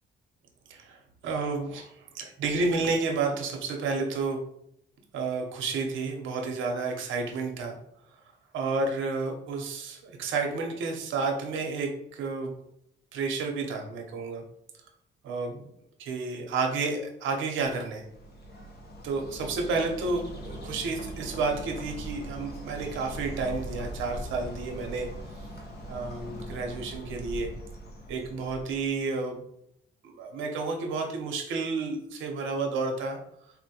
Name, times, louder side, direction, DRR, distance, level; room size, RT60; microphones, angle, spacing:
voice 1, 0.7-4.4 5.1-7.8 8.5-12.5 13.1-14.4 15.2-15.7 16.0-18.1 19.0-25.1 25.9-27.5 28.1-29.4 30.0-33.2, right 4 dB, 80° right, 2 dB, 0.7 m, -31 dB
Bird, 17.6-29.0, right 1 dB, 55° left, 0.8 m, -41 dB
4.1 x 2.1 x 2.8 m, 0.76 s
cardioid pair, 90°, 20 cm